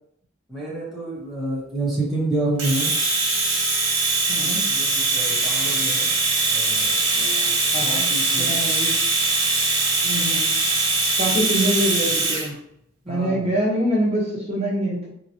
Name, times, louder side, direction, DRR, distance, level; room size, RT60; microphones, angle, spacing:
voice 1, 0.5-2.9 4.6-6.1 6.5-7.5 7.8-8.6 13.1-13.5, right 2 dB, ahead, -8 dB, 1.0 m, -28 dB
Domestic sounds home sounds, 2.6-12.5, right 3 dB, 70° right, 1.3 m, -21 dB
voice 2, 4.3-4.6 7.7-8.1 8.4-9.0 10.0-10.6 11.2-12.6 13.0-15.1, equal, 30° right, -5 dB, 1.0 m, -25 dB
3.6 x 2.9 x 2.8 m, 0.74 s
head